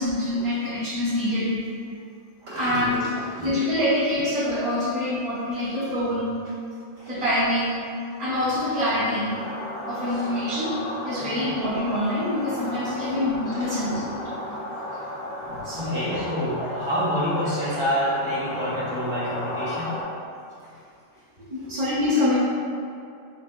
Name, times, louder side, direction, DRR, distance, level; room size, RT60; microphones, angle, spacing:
voice 1, 0.0-1.6 2.4-3.1 3.4-6.3 7.1-7.9 8.2-9.3 9.9-14.2 15.6-16.2 16.6-16.7 19.3-19.4 19.9-20.0 21.4-22.4, left 1 dB, 40° right, -11 dB, 0.7 m, -25 dB
voice 2, 2.5-3.5 7.0-7.1 10.1-10.3 11.2-11.5 13.0-13.2 13.5-14.2 14.9-15.0 15.4-20.0 20.6-20.7 21.1-21.2 21.6-21.7, equal, 70° right, -11 dB, 1.9 m, -29 dB
sound 1, 9.3-20.0, left 1 dB, 70° left, 1.1 m, -34 dB
4.2 x 3.7 x 2.2 m, 2.4 s
omnidirectional pair, 1.3 m